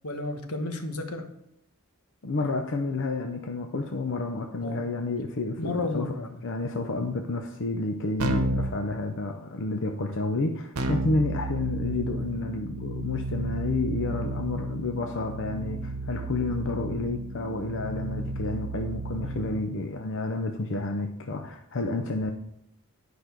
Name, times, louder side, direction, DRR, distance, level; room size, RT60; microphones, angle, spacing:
voice 1, 0.0-1.3 4.6-4.9 5.6-6.4, left 2 dB, 85° left, 6 dB, 1.2 m, -32 dB
voice 2, 2.2-6.1 6.4-22.3, left 3 dB, 60° left, 5 dB, 0.6 m, -30 dB
Keyboard (musical), 8.2-8.8 10.8-19.6, right 1 dB, 80° right, 0.9 m, -32 dB
10.5 x 5.2 x 4.5 m, 0.79 s
head